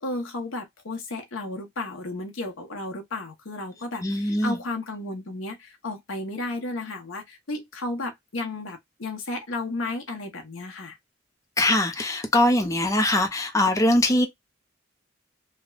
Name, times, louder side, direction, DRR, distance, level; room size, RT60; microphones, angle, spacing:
voice 1, 0.0-11.0, left 2 dB, 85° left, 1.0 m, -33 dB
voice 2, 4.0-4.6 11.6-14.3, left 1 dB, 15° left, 0.5 m, -22 dB
3.3 x 2.2 x 2.3 m
head